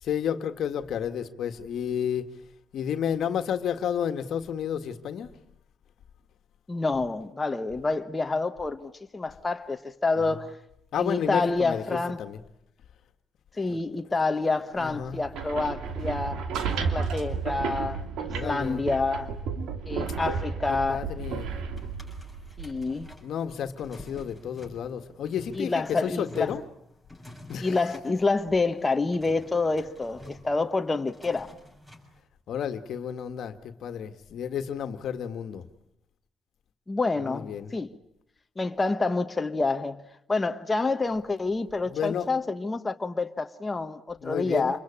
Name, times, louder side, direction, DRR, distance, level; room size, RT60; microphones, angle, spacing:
voice 1, 0.0-2.3 2.7-5.3 10.3-10.4 10.9-11.8 12.2-12.4 13.7-13.8 14.8-15.2 18.3-18.8 20.7-21.5 23.2-26.6 27.5-27.8 28.1-28.2 32.5-35.7 37.2-37.7 41.9-42.3 44.2-44.8, left 8 dB, 70° left, 1.7 m, -31 dB
voice 2, 6.7-10.6 11.0-12.2 13.6-16.5 16.7-19.3 19.9-21.1 22.6-23.1 25.5-26.5 27.6-31.5 36.9-37.9 38.6-44.8, left 3 dB, 20° left, 1.3 m, -28 dB
sound 1, 15.1-23.1, right 5 dB, 85° right, 2.6 m, -32 dB
sound 2, 21.8-32.2, left 1 dB, 10° right, 6.9 m, -49 dB
28.0 x 22.5 x 8.7 m
cardioid pair, 90°, 0 cm